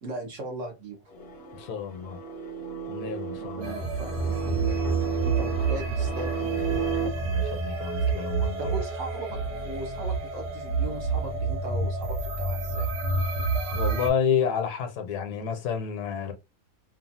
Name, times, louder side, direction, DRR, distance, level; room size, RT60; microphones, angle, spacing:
voice 1, 0.0-1.0 3.3-4.8 5.2-7.1 8.6-9.4 9.6-12.9, right 2 dB, 60° right, 1.0 m, -38 dB
sound 1, 1.1-7.1, right 6 dB, 55° left, 0.8 m, -33 dB
voice 2, 1.5-2.2 2.9-3.8 7.2-8.8 13.7-16.3, left 7 dB, 80° left, 1.1 m, -30 dB
sound 2, 3.6-14.1, right 4 dB, 85° right, 1.3 m, -28 dB
2.9 x 2.3 x 2.6 m
omnidirectional pair, 1.7 m